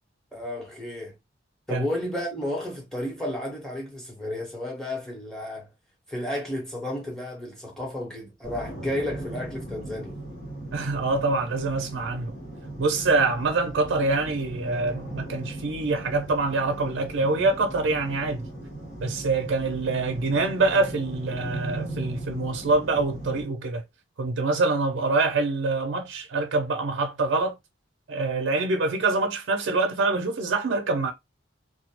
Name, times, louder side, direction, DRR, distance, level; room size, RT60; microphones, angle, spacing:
voice 1, 0.3-1.1 1.7-5.7 6.1-10.2, left 1 dB, 5° left, 0.9 m, -32 dB
sound 1, 8.4-23.4, right 1 dB, 60° left, 1.1 m, -38 dB
voice 2, 10.7-12.3 12.8-18.5 19.0-23.8 24.2-27.6 28.1-31.1, right 3 dB, 70° right, 0.4 m, -25 dB
2.2 x 2.0 x 2.8 m
head